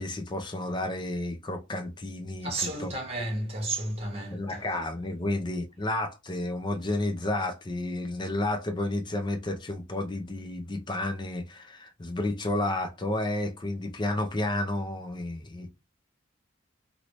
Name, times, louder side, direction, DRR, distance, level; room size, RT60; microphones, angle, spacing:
voice 1, 0.0-2.9 4.2-15.7, left 1 dB, 25° left, 0.5 m, -31 dB
voice 2, 2.4-4.6, right 2 dB, 30° right, 1.3 m, -32 dB
2.9 x 2.7 x 3.1 m
head